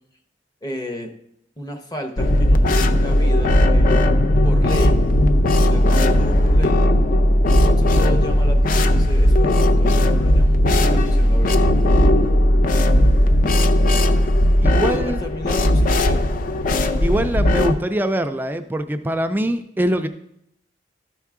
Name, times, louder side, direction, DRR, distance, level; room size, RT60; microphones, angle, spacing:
voice 1, 0.6-1.1 1.6-5.0 5.6-6.8 7.4-11.6 14.8-16.2, equal, 20° left, 5 dB, 0.8 m, -33 dB
sound 1, 2.2-17.7, left 1 dB, 50° left, 0.5 m, -16 dB
voice 2, 14.6-15.2 17.0-20.1, right 1 dB, 10° right, 8 dB, 0.3 m, -23 dB
12.5 x 4.6 x 3.6 m, 0.76 s
head